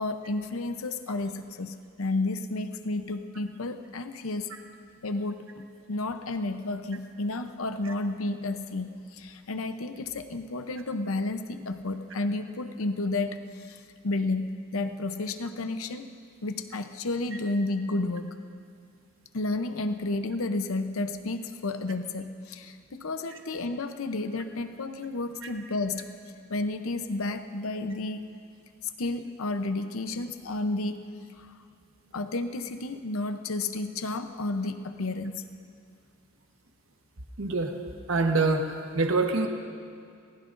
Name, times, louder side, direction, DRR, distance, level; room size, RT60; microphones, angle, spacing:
voice 1, 0.0-4.5 5.0-5.5 5.9-16.1 16.4-18.4 19.3-26.1 26.5-28.3 28.8-31.0 31.4-31.6 32.1-35.4, left 2 dB, 80° left, 8 dB, 0.7 m, -31 dB
voice 2, 37.4-37.7 38.1-39.5, right 3 dB, 70° right, 3 dB, 1.2 m, -25 dB
29.0 x 19.5 x 2.6 m, 2.3 s
head